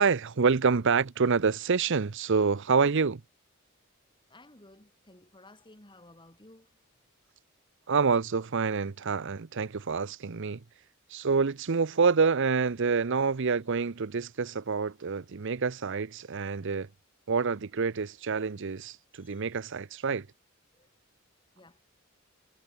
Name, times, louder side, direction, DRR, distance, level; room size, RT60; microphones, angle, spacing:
voice 1, 0.0-3.2 7.9-10.6 11.1-16.9 17.3-20.3, right 5 dB, 65° right, 0.7 m, -27 dB
voice 2, 4.3-6.7 19.2-19.4 20.8-20.9 21.6-21.8, left 1 dB, 25° left, 6.2 m, -55 dB
head